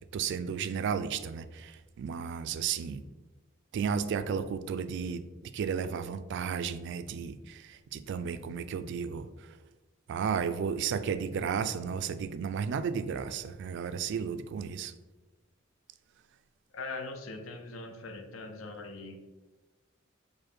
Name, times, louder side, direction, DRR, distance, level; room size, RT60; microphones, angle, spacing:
voice 1, 0.1-3.0 3.7-5.2 5.5-9.3 10.1-14.9, right 6 dB, 60° right, 11 dB, 0.3 m, -33 dB
voice 2, 16.7-19.2, left 3 dB, 75° left, 5 dB, 0.6 m, -41 dB
5.0 x 2.2 x 4.3 m, 1.1 s
head